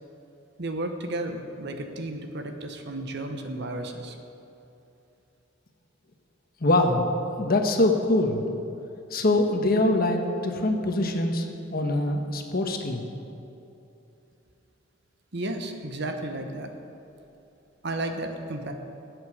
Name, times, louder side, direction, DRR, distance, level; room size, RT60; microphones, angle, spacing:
voice 1, 0.6-4.2 15.3-16.7 17.8-18.7, right 1 dB, 60° right, 5 dB, 1.2 m, -33 dB
voice 2, 6.6-7.1 7.4-8.4 9.1-11.5 11.7-13.0, left 2 dB, 50° left, 4 dB, 1.3 m, -23 dB
20.0 x 8.1 x 5.0 m, 2.8 s
head